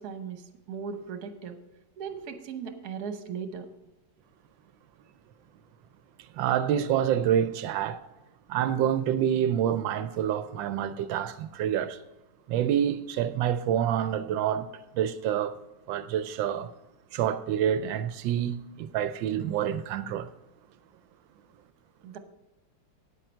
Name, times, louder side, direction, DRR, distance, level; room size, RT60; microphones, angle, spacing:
voice 1, 0.0-1.6 2.0-3.7 22.0-22.2, right 6 dB, 60° right, 1.4 m, -38 dB
voice 2, 6.3-8.0 8.5-12.0 12.5-15.6 15.9-16.7 17.1-20.3, right 9 dB, 85° right, 1.3 m, -27 dB
9.2 x 9.1 x 4.4 m
omnidirectional pair, 2.0 m